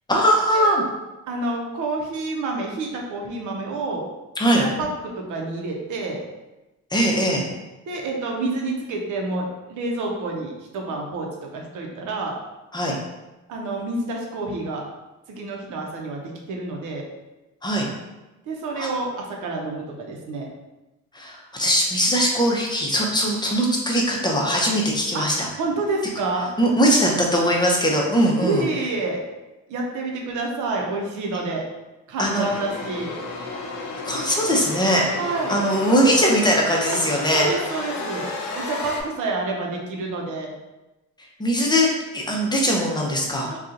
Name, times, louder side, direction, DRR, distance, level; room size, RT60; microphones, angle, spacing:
voice 1, 0.1-0.8 4.4-4.7 6.9-7.5 12.7-13.0 17.6-17.9 18.7-18.9 21.1-25.5 26.6-28.7 32.2-32.5 34.0-35.0 35.5-37.5 41.4-43.5, equal, 15° left, -1 dB, 0.7 m, -20 dB
voice 2, 1.3-4.0 4.6-6.2 7.9-12.4 13.5-14.8 15.3-17.0 18.5-20.5 25.1-25.3 25.6-26.5 28.4-29.2 29.7-31.6 32.1-33.2 35.2-35.6 37.3-38.3 38.5-40.5 43.5-43.6, right 2 dB, 80° right, 0 dB, 0.7 m, -28 dB
sound 1, 32.3-39.0, left 3 dB, 70° left, 0.7 m, -32 dB
2.7 x 2.4 x 3.8 m, 1.0 s
cardioid pair, 90°, 30 cm